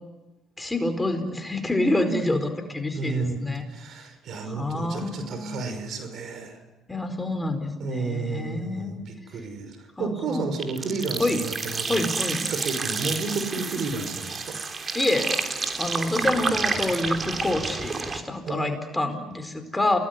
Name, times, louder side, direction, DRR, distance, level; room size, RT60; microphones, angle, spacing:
voice 1, 0.6-3.6 4.5-5.6 6.9-9.1 10.0-10.5 11.2-11.4 11.9-12.4 14.9-15.3 15.8-20.0, left 2 dB, 15° left, 7 dB, 4.7 m, -27 dB
voice 2, 2.9-3.4 3.7-6.6 7.8-12.0 12.3-14.6 18.5-18.8, right 4 dB, 60° right, 8 dB, 5.6 m, -32 dB
sound 1, 10.6-18.2, right 4 dB, 35° right, 3.3 m, -29 dB
29.5 x 19.0 x 9.9 m, 1.1 s
supercardioid pair, 75°, 0 cm